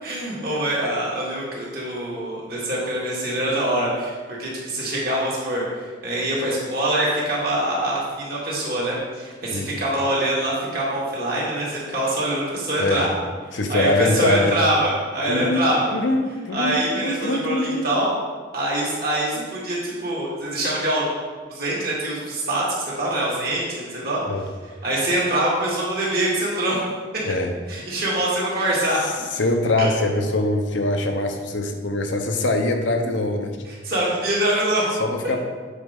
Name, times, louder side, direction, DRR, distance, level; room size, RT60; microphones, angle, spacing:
voice 1, 0.0-13.1 13.5-16.0 16.5-18.1 18.5-21.1 21.5-22.6 23.0-24.2 24.8-26.8 27.7-29.0 29.8-29.9 33.8-34.9, right 1 dB, 50° right, -5 dB, 2.2 m, -24 dB
voice 2, 13.5-14.6 15.3-15.7 15.9-17.9 24.3-24.5 27.2-27.5 29.3-33.6 35.0-35.4, left 2 dB, 75° left, 4 dB, 0.8 m, -23 dB
8.2 x 5.3 x 3.7 m, 1.4 s
head